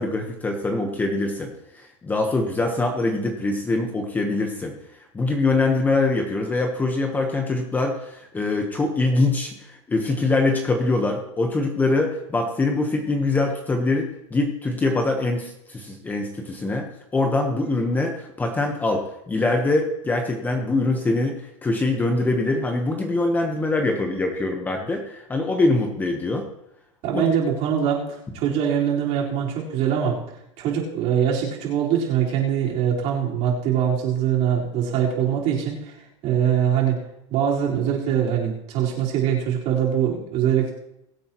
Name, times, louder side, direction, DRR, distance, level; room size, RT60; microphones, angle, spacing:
voice 1, 0.0-16.9 17.1-26.5 27.1-27.2, left 2 dB, 10° left, 3 dB, 1.1 m, -23 dB
voice 2, 27.0-30.2 30.6-35.9 36.2-37.0 37.3-40.7, right 8 dB, 40° right, -4 dB, 4.5 m, -23 dB
22.5 x 8.6 x 3.1 m, 0.81 s
supercardioid pair, 155°, 16 cm